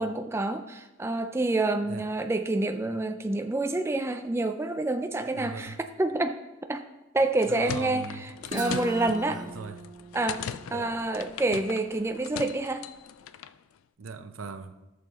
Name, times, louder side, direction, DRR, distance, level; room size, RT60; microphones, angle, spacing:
voice 1, 0.0-6.4 6.7-6.8 7.1-9.4 10.1-12.9, right 2 dB, 10° right, 0.3 m, -28 dB
voice 2, 5.3-5.8 7.5-8.3 9.3-9.9 10.7-10.9 14.0-14.8, right 4 dB, 80° right, 0.7 m, -39 dB
sound 1, 7.2-13.6, left 8 dB, 80° left, 0.4 m, -40 dB
Guitar, 8.4-12.2, right 2 dB, 40° right, 1.5 m, -39 dB
14.5 x 6.6 x 3.0 m
head